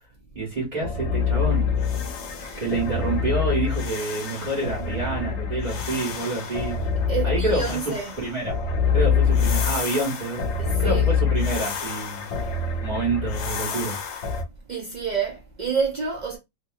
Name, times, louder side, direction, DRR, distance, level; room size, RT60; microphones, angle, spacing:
voice 1, 0.3-1.6 2.6-6.8 7.2-8.6 8.9-10.5 10.8-12.3 12.8-14.0, right 2 dB, 30° right, 1.3 m, -28 dB
sound 1, 0.8-14.4, left 6 dB, 65° left, 0.8 m, -26 dB
voice 2, 2.3-2.7 7.1-8.1 10.6-11.1 14.7-16.4, right 6 dB, 75° right, 0.4 m, -28 dB
2.7 x 2.5 x 2.3 m
omnidirectional pair, 1.5 m